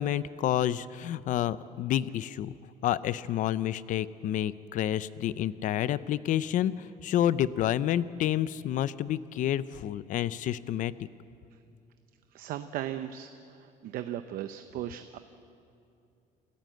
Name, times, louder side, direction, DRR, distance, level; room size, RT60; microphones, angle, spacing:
voice 1, 0.0-2.5 2.8-10.9, left 11 dB, 60° left, 17 dB, 0.6 m, -29 dB
voice 2, 12.3-15.2, right 11 dB, 75° right, 9 dB, 0.7 m, -37 dB
27.0 x 14.5 x 7.7 m, 2.5 s
cardioid pair, 150°, 15 cm